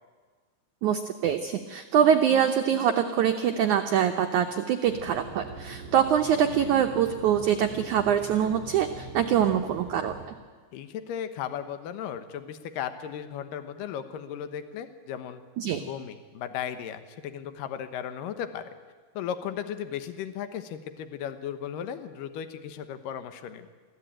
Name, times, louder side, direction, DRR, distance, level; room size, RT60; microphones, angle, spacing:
voice 1, 0.8-10.2 15.6-15.8, right 9 dB, 80° right, 6 dB, 1.7 m, -24 dB
sound 1, 4.8-10.3, right 4 dB, 35° right, 3.5 m, -43 dB
voice 2, 10.7-15.4 15.8-18.7 19.1-23.7, left 9 dB, 70° left, 9 dB, 2.5 m, -36 dB
23.5 x 14.5 x 9.0 m, 1.5 s
omnidirectional pair, 4.6 m